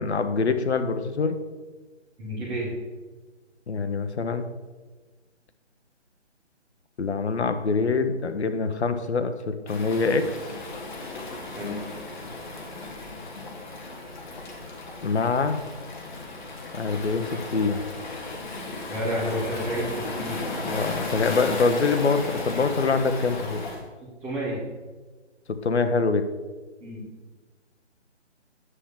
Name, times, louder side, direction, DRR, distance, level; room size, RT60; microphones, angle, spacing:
voice 1, 0.0-1.4 3.7-4.5 7.0-10.4 15.0-15.6 16.7-17.8 20.6-23.6 25.6-26.2, left 4 dB, 65° left, 9 dB, 1.0 m, -24 dB
voice 2, 2.2-2.7 11.5-11.9 18.9-19.8 20.1-20.4 24.2-24.6 26.8-27.0, equal, 15° right, -9 dB, 2.7 m, -30 dB
Waves surf, 9.7-23.8, left 2 dB, 40° left, 1.6 m, -35 dB
9.7 x 7.4 x 3.7 m, 1.3 s
figure-of-eight pair, 160°, 35 cm